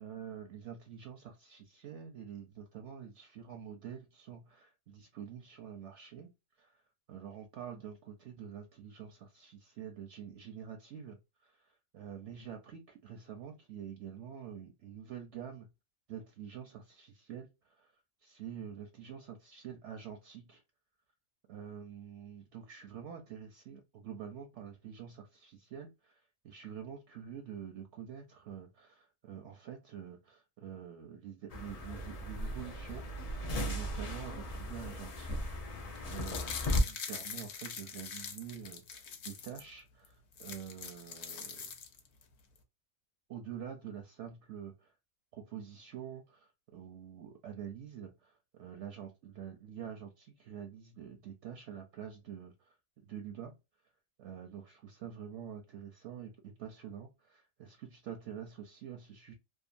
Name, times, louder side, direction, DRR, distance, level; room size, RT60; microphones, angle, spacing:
voice 1, 0.0-6.3 6.6-6.8 7.1-15.7 16.1-17.9 18.2-20.6 21.5-26.2 26.4-33.0 33.6-36.6 36.9-41.7 43.3-44.9 45.3-53.5 54.2-59.3, right 8 dB, 65° right, 0.7 m, -47 dB
sound 1, 31.5-36.8, left 1 dB, 75° left, 0.3 m, -37 dB
sound 2, 35.9-39.6 40.0-40.1 40.3-42.2 42.6-42.7, left 6 dB, 60° left, 0.8 m, -43 dB
2.7 x 2.3 x 2.4 m
omnidirectional pair, 1.5 m